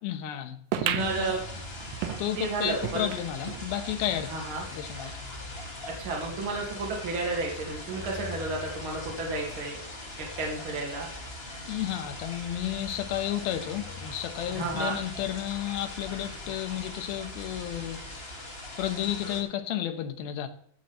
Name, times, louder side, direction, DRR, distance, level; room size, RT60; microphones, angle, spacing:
voice 1, 0.0-1.3 2.2-4.3 4.7-5.2 11.7-18.0 18.8-20.5, left 11 dB, 90° left, 7 dB, 3.0 m, -32 dB
sound 1, 0.7-3.7 4.1-4.2 4.4-4.5 5.3-5.4, right 11 dB, 80° right, 2.4 m, -34 dB
sound 2, 1.0-19.4, left 1 dB, 20° left, 1.8 m, -40 dB
voice 2, 1.0-1.4 2.4-3.1 4.3-4.7 6.0-9.8 10.2-11.1 14.6-15.0, right 3 dB, 40° right, -1 dB, 2.7 m, -32 dB
15.0 x 7.8 x 4.3 m, 0.66 s
omnidirectional pair, 4.2 m